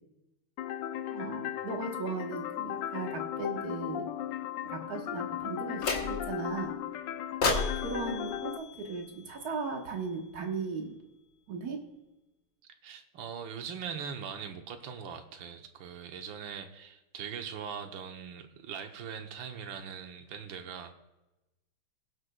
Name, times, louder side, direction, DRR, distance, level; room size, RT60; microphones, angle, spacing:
sound 1, 0.6-8.6, left 11 dB, 75° left, 1.1 m, -36 dB
voice 1, 1.1-4.1 4.6-6.8 7.8-10.9 11.5-11.8, right 4 dB, 50° right, 2 dB, 1.7 m, -37 dB
sound 2, 5.8-6.5 7.4-9.6, left 3 dB, 45° left, 1.4 m, -33 dB
voice 2, 12.8-20.9, right 7 dB, 65° right, 5 dB, 1.6 m, -41 dB
20.5 x 8.0 x 2.3 m, 1.0 s
omnidirectional pair, 2.4 m